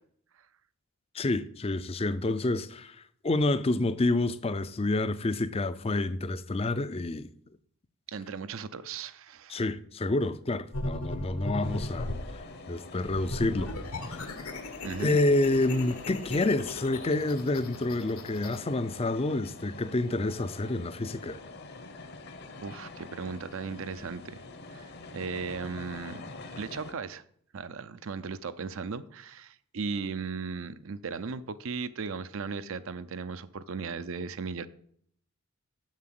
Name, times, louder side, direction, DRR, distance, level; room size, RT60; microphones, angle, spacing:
voice 1, 1.1-3.0 3.2-7.3 9.5-12.1 12.7-13.7 14.0-14.3 15.0-21.4, left 2 dB, 25° left, 0.4 m, -28 dB
voice 2, 8.1-9.6 14.8-15.2 22.6-24.4 24.7-26.2 26.6-27.2 27.5-34.7, right 5 dB, 65° right, 0.5 m, -37 dB
sound 1, 10.7-12.3 13.0-18.6, left 1 dB, 80° left, 1.4 m, -37 dB
sound 2, 11.6-26.9, left 3 dB, 45° left, 0.9 m, -45 dB
7.4 x 7.0 x 7.6 m
head